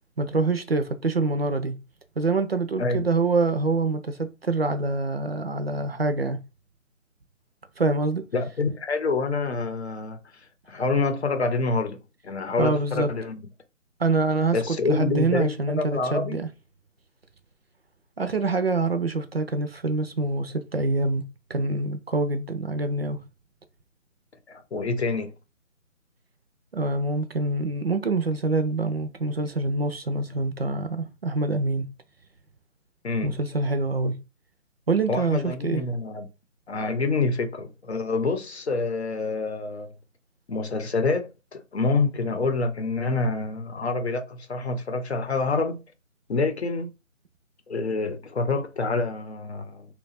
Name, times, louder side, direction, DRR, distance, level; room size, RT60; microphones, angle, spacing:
voice 1, 0.2-1.8 2.2-6.4 7.8-8.3 12.6-13.1 14.0-16.5 18.2-23.2 26.7-31.9 33.2-34.2 34.9-35.8, right 3 dB, 50° right, 0.5 m, -25 dB
voice 2, 8.3-10.2 10.7-12.0 12.2-13.5 14.5-16.4 24.5-25.3 33.0-33.4 35.1-36.3 36.7-39.9 40.5-45.8 46.3-46.9 47.7-49.9, left 3 dB, 55° left, 0.8 m, -27 dB
2.8 x 2.3 x 4.1 m
figure-of-eight pair, 165°, 40 cm